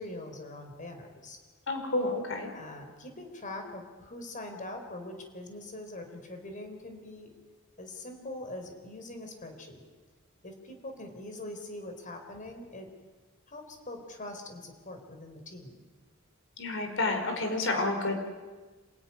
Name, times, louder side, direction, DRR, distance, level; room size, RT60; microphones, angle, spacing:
voice 1, 0.0-1.4 2.3-7.3 7.8-9.8 10.4-12.9 13.5-15.8, left 1 dB, 40° left, 5 dB, 4.3 m, -43 dB
voice 2, 1.7-2.5 16.6-18.3, left 2 dB, 65° left, 5 dB, 4.9 m, -30 dB
27.0 x 17.0 x 9.9 m, 1.4 s
head